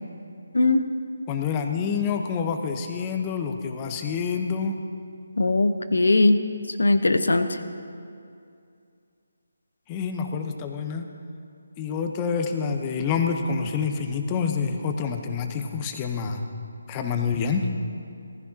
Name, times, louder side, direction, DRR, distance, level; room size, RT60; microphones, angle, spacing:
voice 1, 0.5-0.9 5.4-6.4 6.8-7.6, left 2 dB, 75° left, 9 dB, 0.9 m, -20 dB
voice 2, 1.3-4.8 9.9-11.0 11.8-16.4 16.9-17.7, left 6 dB, 20° left, 5 dB, 0.9 m, -27 dB
18.0 x 15.0 x 2.8 m, 2.5 s
figure-of-eight pair, 155°, 0 cm